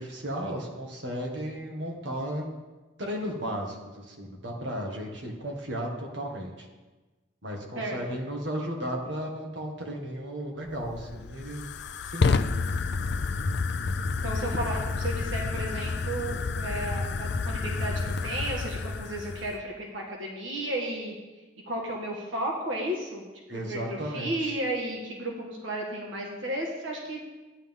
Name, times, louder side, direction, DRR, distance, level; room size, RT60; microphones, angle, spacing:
voice 1, 0.0-2.5 3.0-3.8 4.0-6.7 7.4-11.7 12.0-12.4 23.5-24.6, equal, 70° right, 0 dB, 1.8 m, -34 dB
Fire, 10.6-19.6, left 4 dB, 60° left, 0.4 m, -29 dB
voice 2, 14.2-21.2 21.7-27.2, right 1 dB, 85° right, -1 dB, 1.7 m, -33 dB
13.0 x 10.0 x 3.7 m, 1.2 s
head